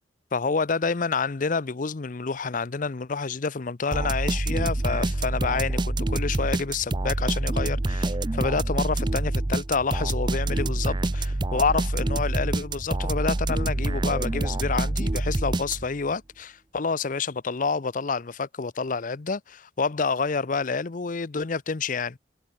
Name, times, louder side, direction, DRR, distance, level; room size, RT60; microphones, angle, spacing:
voice 1, 0.3-22.2, left 4 dB, 45° left, 0.6 m, -28 dB
sound 1, 3.9-16.1, right 2 dB, 25° right, 0.6 m, -26 dB
head